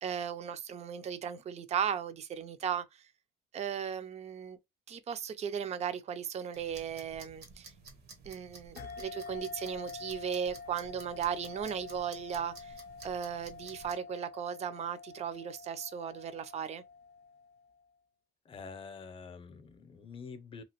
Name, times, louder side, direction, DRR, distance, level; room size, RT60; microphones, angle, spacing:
voice 1, 0.0-3.1 3.5-4.6 4.9-7.7 8.2-12.8 13.0-16.8, right 8 dB, 40° right, 0.5 m, -36 dB
sound 1, 6.5-13.9, right 3 dB, 70° right, 1.0 m, -53 dB
sound 2, 8.8-17.8, left 5 dB, 75° left, 0.5 m, -47 dB
voice 2, 18.4-20.6, left 5 dB, 30° left, 0.6 m, -46 dB
2.9 x 2.5 x 2.9 m
cardioid pair, 110°, 17 cm